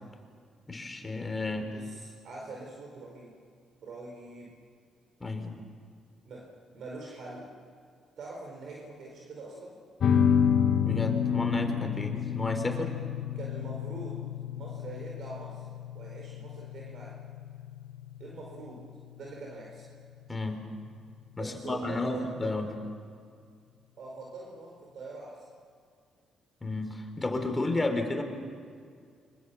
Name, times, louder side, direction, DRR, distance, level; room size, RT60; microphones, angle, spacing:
voice 1, 0.7-1.7 5.2-5.6 10.8-12.9 20.3-20.6 21.4-22.7 26.6-28.2, left 2 dB, 20° left, 5 dB, 4.0 m, -32 dB
voice 2, 1.7-3.3 3.8-4.6 6.2-7.5 8.2-9.8 13.3-14.2 14.5-15.6 15.9-17.2 18.2-18.8 19.1-19.8 21.4-22.7 24.0-25.5, right 2 dB, 65° right, -1 dB, 4.8 m, -43 dB
sound 1, 10.0-21.0, left 8 dB, 60° left, 1.8 m, -30 dB
29.0 x 25.0 x 7.1 m, 2.2 s
cardioid pair, 90°, 0 cm